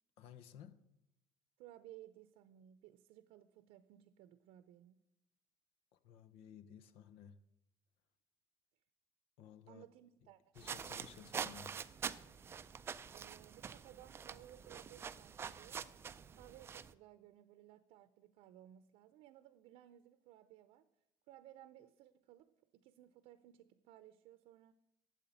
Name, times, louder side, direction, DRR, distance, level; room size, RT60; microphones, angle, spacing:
voice 1, 0.2-0.8 5.9-7.4 9.4-9.8 10.5-11.9, left 8 dB, 70° left, 1.1 m, -56 dB
voice 2, 1.6-5.0 9.7-10.8 13.1-15.9 16.3-20.9 21.3-24.7, right 13 dB, 70° right, 0.8 m, -59 dB
sound 1, 10.6-16.9, right 7 dB, 25° right, 0.5 m, -46 dB
12.5 x 8.7 x 8.6 m
cardioid pair, 155°, 10 cm